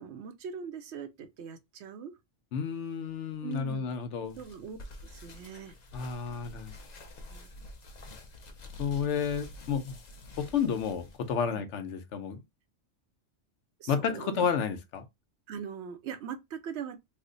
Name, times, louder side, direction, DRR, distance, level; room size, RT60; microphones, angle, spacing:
voice 1, 0.0-2.1 3.4-3.9 4.4-4.8 5.0-5.8 7.3-7.5 11.5-11.6 13.8-14.5 15.5-17.0, right 7 dB, 70° right, 0.8 m, -41 dB
voice 2, 2.5-4.4 5.9-6.8 8.8-10.0 10.4-12.4 13.9-15.0, left 7 dB, 75° left, 1.0 m, -31 dB
sound 1, 4.2-11.3, left 1 dB, 45° left, 0.6 m, -48 dB
3.2 x 2.1 x 3.7 m
omnidirectional pair, 1.2 m